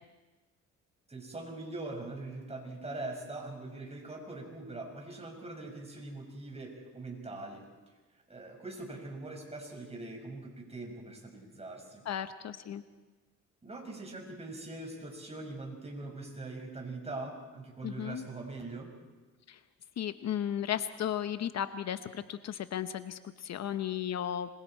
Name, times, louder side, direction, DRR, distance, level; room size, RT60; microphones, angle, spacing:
voice 1, 1.1-7.6 8.3-12.0 13.6-18.9, right 2 dB, 20° right, 2 dB, 5.5 m, -42 dB
voice 2, 12.1-12.8 17.8-18.3 19.5-19.6 20.0-24.5, left 10 dB, 60° left, 11 dB, 0.9 m, -35 dB
26.5 x 22.0 x 4.4 m, 1.2 s
cardioid pair, 90°, 30 cm